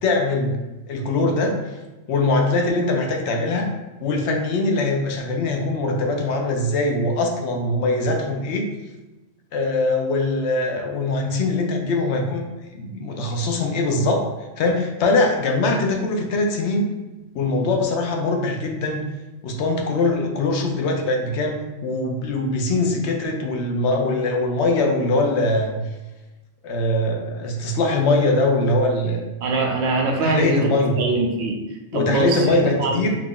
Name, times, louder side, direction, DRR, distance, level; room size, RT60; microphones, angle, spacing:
voice 1, 0.0-0.6 0.9-1.8 2.1-3.7 4.0-8.7 9.5-12.5 12.7-14.3 14.6-16.9 17.3-19.0 19.4-25.8 26.6-29.2 30.2-30.9 31.9-33.1, left 2 dB, 70° left, 2 dB, 0.8 m, -22 dB
voice 2, 29.4-33.1, right 2 dB, 75° right, 2 dB, 0.9 m, -23 dB
2.8 x 2.5 x 3.6 m, 1.1 s
omnidirectional pair, 1.2 m